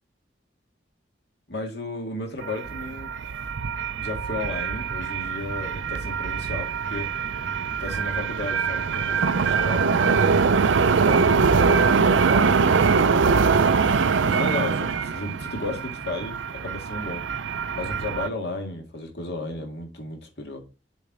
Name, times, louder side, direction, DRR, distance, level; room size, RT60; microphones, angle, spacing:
voice 1, 1.5-3.1 4.0-7.1 7.8-10.2 11.0-13.4 14.2-17.3 17.8-20.7, left 2 dB, 60° left, 2.1 m, -34 dB
sound 1, 2.4-18.3, right 5 dB, 85° right, 0.5 m, -23 dB
7.1 x 4.4 x 4.9 m
head